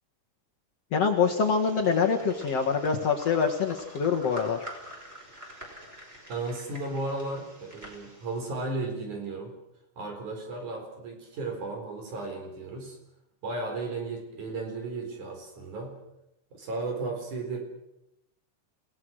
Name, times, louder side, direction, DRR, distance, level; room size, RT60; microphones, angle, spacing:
voice 1, 0.9-4.6, left 5 dB, 55° left, 2 dB, 2.3 m, -25 dB
sound 1, 1.2-8.5, equal, 15° right, 5.7 m, -46 dB
voice 2, 6.3-9.6 10.0-13.0 13.4-16.0 16.5-17.6, right 3 dB, 60° right, 3 dB, 5.7 m, -34 dB
29.0 x 18.0 x 6.4 m, 0.85 s
omnidirectional pair, 4.0 m